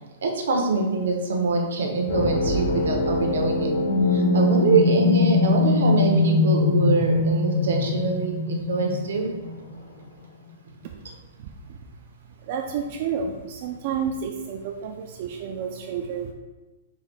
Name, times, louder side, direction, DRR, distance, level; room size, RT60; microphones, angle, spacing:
voice 1, 0.2-3.7 4.1-9.3, right 3 dB, 75° right, 2 dB, 0.9 m, -24 dB
sound 1, 2.1-9.8, left 3 dB, 50° left, 0.8 m, -22 dB
voice 2, 11.4-11.8 12.4-16.3, right 6 dB, 40° right, 2 dB, 0.3 m, -31 dB
4.0 x 2.7 x 4.5 m, 1.1 s
hypercardioid pair, 165°, 0 cm